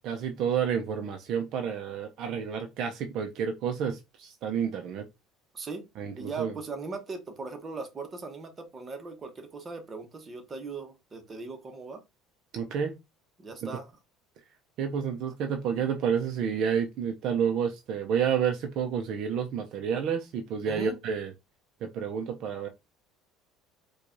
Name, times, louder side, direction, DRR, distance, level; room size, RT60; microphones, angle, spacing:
voice 1, 0.0-5.0 6.0-6.5 12.5-13.0 14.8-21.3 21.8-22.7, right 7 dB, 55° right, 0.5 m, -30 dB
voice 2, 5.5-5.9 6.2-12.0 13.4-13.9 20.7-21.0, right 4 dB, 25° right, 0.9 m, -39 dB
4.6 x 2.3 x 2.6 m
cardioid pair, 130°, 0 cm